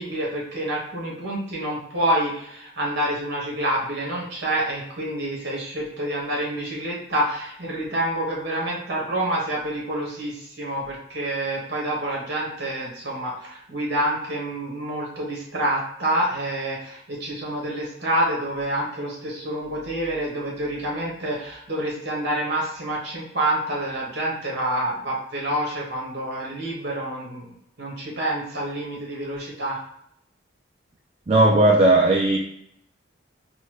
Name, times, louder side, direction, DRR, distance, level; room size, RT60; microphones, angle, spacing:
voice 1, 0.0-27.5 27.8-29.8, right 1 dB, 55° right, -3 dB, 1.4 m, -27 dB
voice 2, 31.3-32.4, right 2 dB, 30° right, -1 dB, 0.4 m, -16 dB
4.1 x 2.4 x 3.0 m, 0.70 s
head